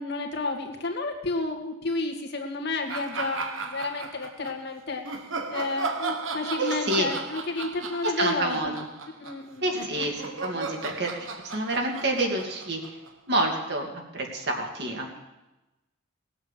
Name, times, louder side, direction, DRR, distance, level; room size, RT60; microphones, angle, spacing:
voice 1, 0.0-5.1 5.5-8.8 9.2-9.6, left 3 dB, 55° left, 2 dB, 1.9 m, -31 dB
sound 1, 2.9-4.5 5.0-13.3, right 4 dB, 75° right, 1.3 m, -35 dB
voice 2, 6.6-7.1 8.2-8.7 9.6-11.1 11.5-12.8 13.3-15.2, right 2 dB, 55° right, 1 dB, 2.7 m, -28 dB
19.0 x 7.9 x 7.6 m, 1.0 s
head